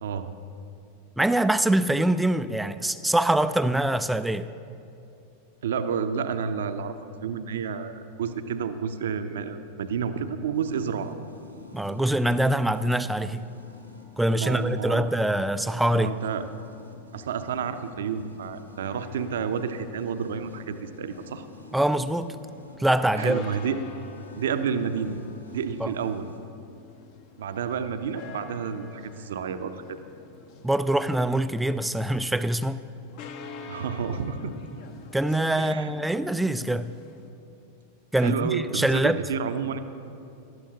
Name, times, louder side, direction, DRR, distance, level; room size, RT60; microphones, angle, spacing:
voice 1, 1.2-4.5 11.7-13.5 14.2-16.1 21.7-22.4 22.8-23.4 25.8-25.9 30.6-32.8 35.1-36.9 38.1-39.2, right 1 dB, 5° right, 12 dB, 0.3 m, -24 dB
voice 2, 5.6-11.1 14.3-15.1 15.9-16.5 17.1-21.5 23.2-23.8 24.4-25.1 25.5-26.3 27.4-30.0 33.7-34.5 35.6-35.9 38.2-39.8, right 6 dB, 60° right, 10 dB, 0.6 m, -30 dB
sound 1, 10.5-26.4, left 3 dB, 90° right, 1.3 m, -49 dB
sound 2, 18.8-37.3, left 5 dB, 45° left, 0.9 m, -48 dB
18.0 x 13.0 x 2.8 m, 2.7 s
figure-of-eight pair, 90°, 0 cm